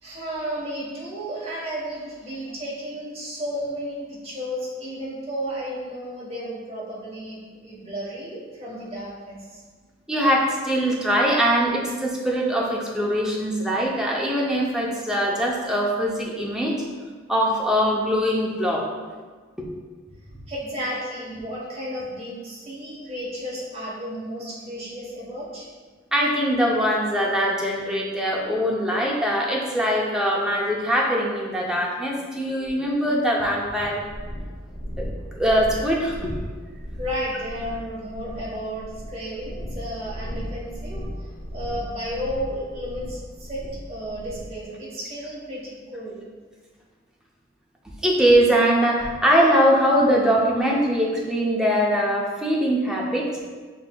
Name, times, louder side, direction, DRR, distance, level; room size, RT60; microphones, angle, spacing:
voice 1, 0.0-9.6 20.5-25.7 37.0-46.2, equal, 30° right, -6 dB, 1.1 m, -33 dB
voice 2, 10.1-16.8 17.3-18.9 19.6-19.7 26.1-34.0 35.0-35.1 35.4-36.4 48.0-53.3, equal, 5° right, -3 dB, 0.5 m, -22 dB
sound 1, 34.0-44.6, equal, 65° left, 1.5 m, -36 dB
5.3 x 3.2 x 2.2 m, 1.5 s
head